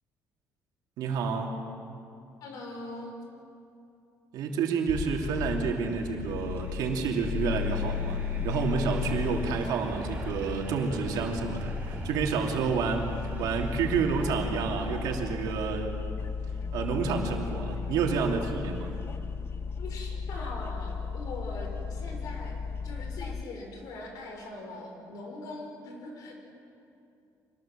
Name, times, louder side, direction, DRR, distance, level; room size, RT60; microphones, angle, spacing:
voice 1, 1.0-1.6 4.3-8.2 8.4-16.0 16.7-18.9, right 5 dB, 90° right, 2 dB, 2.9 m, -29 dB
voice 2, 2.4-3.1 19.8-22.6 22.8-26.3, left 2 dB, 70° left, 2 dB, 5.0 m, -41 dB
sound 1, 4.9-23.4, left 6 dB, 35° left, 0.8 m, -35 dB
sound 2, 6.3-15.5, right 4 dB, 30° right, 3.4 m, -43 dB
25.0 x 19.5 x 7.5 m, 2.6 s
cardioid pair, 165°, 7 cm